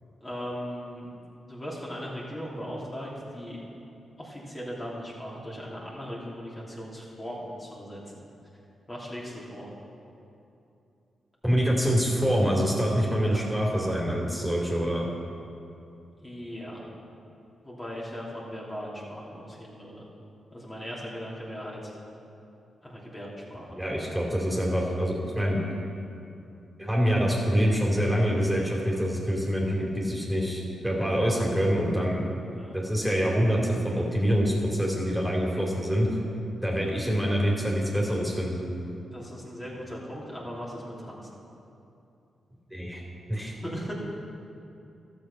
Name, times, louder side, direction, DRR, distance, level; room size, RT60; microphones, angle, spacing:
voice 1, 0.2-1.1 1.5-3.6 4.2-8.2 8.9-9.7 13.2-13.4 16.2-16.8 17.6-20.0 20.5-21.9 22.8-23.8 32.5-32.8 39.1-41.3 43.6-43.9, equal, 25° left, -5 dB, 2.9 m, -38 dB
voice 2, 11.4-15.0 23.7-25.6 26.8-32.3 32.7-36.1 36.6-38.6 42.7-43.0 43.3-43.5, equal, 5° right, -3 dB, 2.8 m, -25 dB
12.5 x 6.7 x 5.6 m, 2.7 s
supercardioid pair, 45°, 0 cm